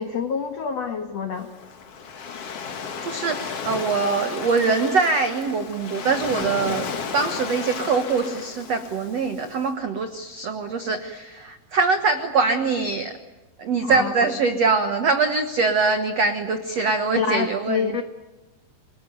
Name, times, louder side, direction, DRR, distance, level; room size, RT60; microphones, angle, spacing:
voice 1, 0.0-1.5 13.8-14.3 17.1-18.0, left 6 dB, 90° left, 7 dB, 1.4 m, -27 dB
Waves surf, 1.4-9.6, left 6 dB, 50° left, 2.0 m, -33 dB
voice 2, 3.0-6.9 7.1-13.1 13.6-18.0, right 4 dB, 85° right, 7 dB, 1.4 m, -23 dB
27.5 x 20.5 x 9.3 m, 1.1 s
omnidirectional pair, 5.3 m